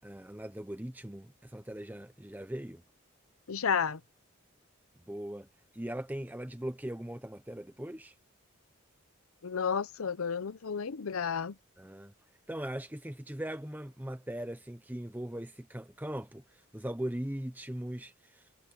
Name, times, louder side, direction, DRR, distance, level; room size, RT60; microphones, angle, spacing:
voice 1, 0.0-2.8 5.1-5.5 5.7-8.1 11.8-12.1 12.5-18.5, right 1 dB, 10° right, 0.8 m, -40 dB
voice 2, 3.5-4.0 9.4-11.5, left 6 dB, 90° left, 0.7 m, -32 dB
head